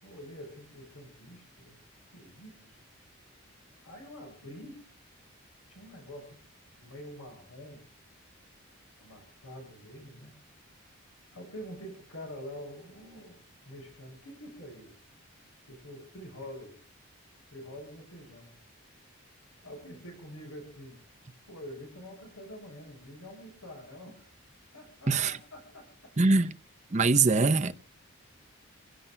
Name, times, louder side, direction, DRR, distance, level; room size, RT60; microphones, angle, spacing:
voice 1, 0.0-1.8 2.1-2.8 3.8-4.8 5.7-6.4 6.8-7.9 9.0-10.3 11.3-14.9 15.6-16.8 17.5-18.5 19.6-21.0 21.5-24.3 24.7-26.4, equal, 90° left, 7.1 m, -46 dB
voice 2, 25.1-25.4 26.2-26.5 26.9-27.7, right 3 dB, 30° right, 0.6 m, -23 dB
29.0 x 16.5 x 2.2 m
head